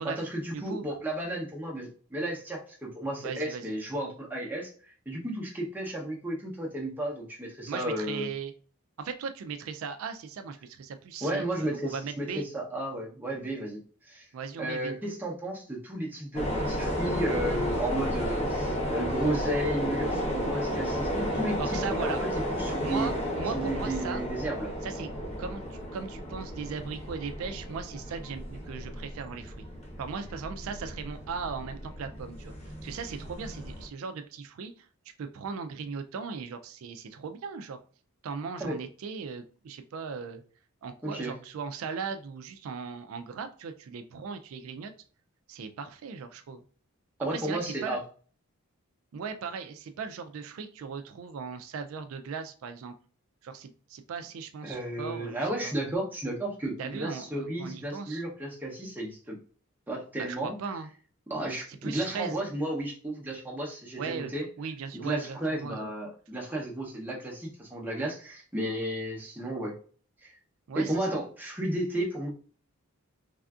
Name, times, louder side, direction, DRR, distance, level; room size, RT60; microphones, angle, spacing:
voice 1, 0.0-8.3 11.2-14.3 14.6-23.1 23.5-24.7 38.6-38.8 41.0-41.4 47.2-48.0 54.6-59.4 59.9-60.5 61.3-64.5 64.9-69.8 70.2-70.3 70.8-72.3, right 1 dB, 10° right, -2 dB, 0.6 m, -33 dB
voice 2, 3.2-3.7 7.7-8.5 9.0-12.5 14.3-14.9 21.6-22.2 22.8-24.2 24.8-25.1 25.4-29.6 30.0-34.9 35.2-37.8 38.2-40.4 40.8-44.9 45.5-46.6 47.3-48.0 49.1-52.9 53.4-55.7 56.8-58.2 60.1-60.9 61.8-62.4 64.0-65.9 70.7-71.1, right 5 dB, 70° right, 8 dB, 0.3 m, -38 dB
sound 1, 16.3-33.9, equal, 30° left, 0.7 m, -33 dB
3.3 x 2.5 x 2.3 m, 0.42 s
head